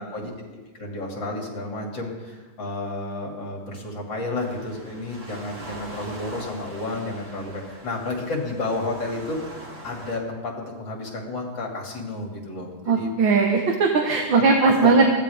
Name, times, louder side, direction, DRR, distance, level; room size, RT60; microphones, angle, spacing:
voice 1, 0.0-13.1 14.8-14.9, left 2 dB, 65° left, 0 dB, 3.5 m, -31 dB
Waves surf, 4.3-10.2, right 1 dB, 40° right, 2.9 m, -42 dB
voice 2, 12.9-15.1, right 4 dB, 70° right, 1 dB, 2.1 m, -19 dB
23.5 x 16.5 x 3.6 m, 1.2 s
omnidirectional pair, 2.2 m